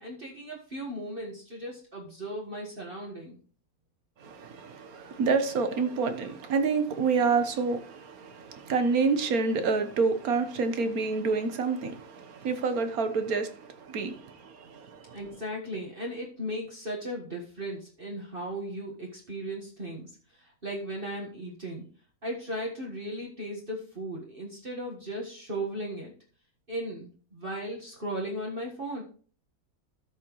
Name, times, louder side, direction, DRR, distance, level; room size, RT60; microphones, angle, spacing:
voice 1, 0.0-3.4 15.1-21.9 22.2-26.1 26.7-29.0, right 1 dB, 40° right, 1.7 m, -36 dB
voice 2, 4.2-15.2, right 4 dB, 75° right, 1.5 m, -28 dB
13.0 x 6.0 x 3.1 m
omnidirectional pair, 1.6 m